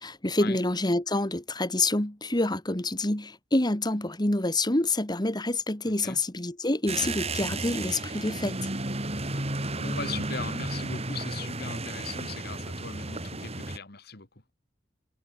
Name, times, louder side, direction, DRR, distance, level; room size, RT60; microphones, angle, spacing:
voice 1, 0.0-8.5, left 2 dB, 25° left, 2.2 m, -27 dB
voice 2, 5.8-6.2 9.8-14.3, left 4 dB, 60° left, 2.6 m, -39 dB
sound 1, 6.9-13.8, right 2 dB, 35° right, 4.7 m, -33 dB
head